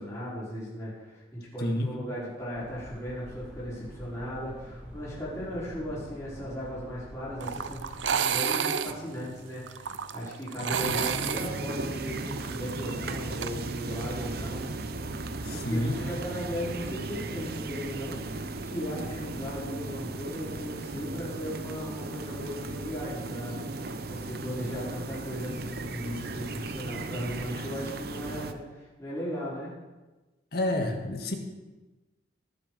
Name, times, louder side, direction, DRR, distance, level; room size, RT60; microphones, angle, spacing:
voice 1, 0.0-14.7 15.5-29.7, equal, 15° left, -9 dB, 5.2 m, -37 dB
voice 2, 1.6-2.0 10.6-11.1 15.4-16.0 30.5-31.3, left 1 dB, 55° left, 3 dB, 1.9 m, -30 dB
sound 1, 2.5-8.0, equal, 5° right, 3.0 m, -45 dB
sound 2, 7.4-13.5, right 7 dB, 80° right, 0.6 m, -31 dB
sound 3, 10.7-28.5, right 2 dB, 55° right, 0.8 m, -36 dB
19.0 x 6.8 x 5.2 m, 1.2 s
head